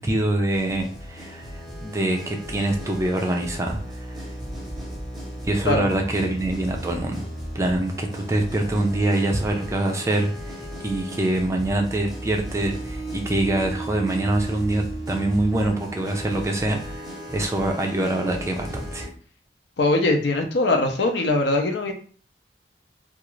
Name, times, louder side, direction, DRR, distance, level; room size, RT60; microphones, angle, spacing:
voice 1, 0.0-4.3 5.4-7.3 7.5-17.0 17.3-19.1, right 1 dB, 15° right, 2 dB, 0.4 m, -25 dB
sound 1, 0.5-19.1, right 1 dB, ahead, 0.7 m, -35 dB
voice 2, 19.8-21.9, left 2 dB, 70° left, 4 dB, 0.6 m, -21 dB
2.4 x 2.4 x 3.0 m, 0.42 s
head